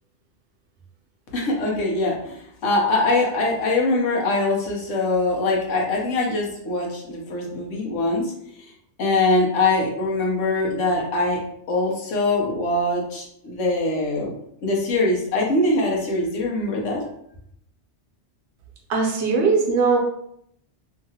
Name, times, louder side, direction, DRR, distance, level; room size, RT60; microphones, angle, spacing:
voice 1, 1.3-8.3 9.0-11.4 11.7-14.3 14.6-17.0, left 2 dB, 85° left, -1 dB, 1.1 m, -23 dB
voice 2, 18.9-20.0, right 4 dB, 70° right, 0 dB, 0.9 m, -19 dB
2.8 x 2.5 x 2.7 m, 0.72 s
omnidirectional pair, 1.3 m